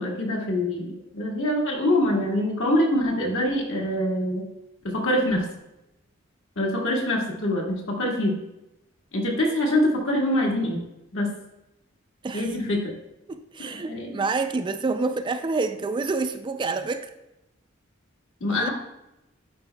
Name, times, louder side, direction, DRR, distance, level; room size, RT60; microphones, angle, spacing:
voice 1, 0.0-4.4 4.8-5.4 6.5-8.4 9.1-10.8 11.1-11.3 12.3-12.9 13.9-14.2 18.4-18.7, left 1 dB, 70° left, -2 dB, 1.6 m, -24 dB
voice 2, 13.3-17.1 18.5-18.7, right 3 dB, 25° right, 9 dB, 0.3 m, -28 dB
10.5 x 4.9 x 2.2 m, 0.92 s
head